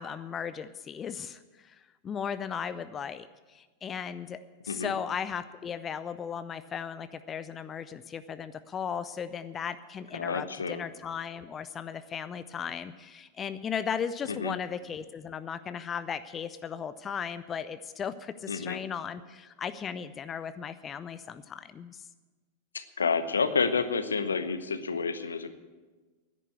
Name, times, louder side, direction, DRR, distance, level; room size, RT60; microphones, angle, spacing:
voice 1, 0.0-22.1, left 7 dB, 25° left, 13 dB, 0.5 m, -36 dB
voice 2, 10.1-10.8 14.3-14.5 18.5-18.8 22.7-25.5, left 5 dB, 75° left, 12 dB, 0.9 m, -29 dB
10.5 x 9.9 x 9.7 m, 1.3 s
figure-of-eight pair, 90°, 0 cm